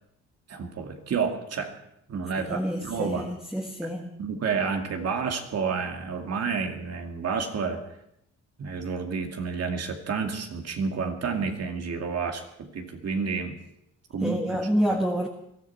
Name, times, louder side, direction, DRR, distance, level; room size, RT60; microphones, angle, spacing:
voice 1, 0.5-1.7 2.1-3.3 4.2-7.8 8.6-13.6 14.1-14.6, right 5 dB, 55° right, 4 dB, 2.5 m, -30 dB
voice 2, 2.4-4.1 7.7-7.9 14.2-15.3, equal, ahead, 2 dB, 1.6 m, -28 dB
22.0 x 14.0 x 4.5 m, 0.78 s
cardioid pair, 90°, 30 cm